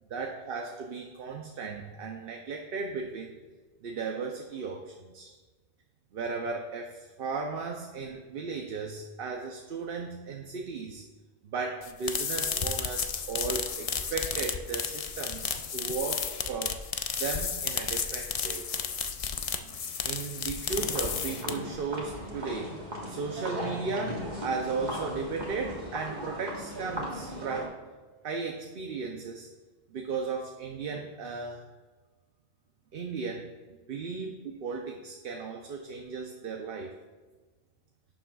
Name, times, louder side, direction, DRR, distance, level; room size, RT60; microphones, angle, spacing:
voice 1, 0.1-3.3 3.8-5.3 6.1-11.0 11.4-16.8 17.2-18.7 19.6-19.7 20.0-22.7 23.0-27.8 28.2-29.5 29.9-31.6 32.9-33.5 33.9-36.9, right 4 dB, 65° right, 3 dB, 0.9 m, -36 dB
sound 1, 11.8-21.8, left 6 dB, 45° left, 0.5 m, -32 dB
sound 2, 20.7-27.7, equal, 45° right, 1.6 m, -38 dB
11.5 x 7.2 x 2.3 m, 1.3 s
omnidirectional pair, 1.1 m